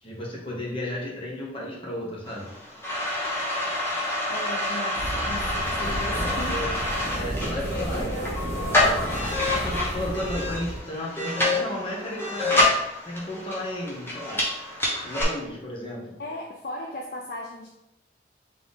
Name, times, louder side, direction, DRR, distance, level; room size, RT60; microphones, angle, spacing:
voice 1, 0.0-2.5 5.8-6.7 7.1-8.0 9.4-12.7 13.0-14.4 15.0-16.2, left 1 dB, 30° left, -4 dB, 1.2 m, -33 dB
sound 1, 2.3-15.2, left 2 dB, 10° left, 1.0 m, -27 dB
voice 2, 4.3-6.6 7.3-9.1 16.2-17.7, left 2 dB, 55° left, 0 dB, 0.5 m, -37 dB
sound 2, 5.0-10.8, right 1 dB, 55° right, 1.4 m, -32 dB
3.8 x 3.3 x 4.0 m, 0.91 s
head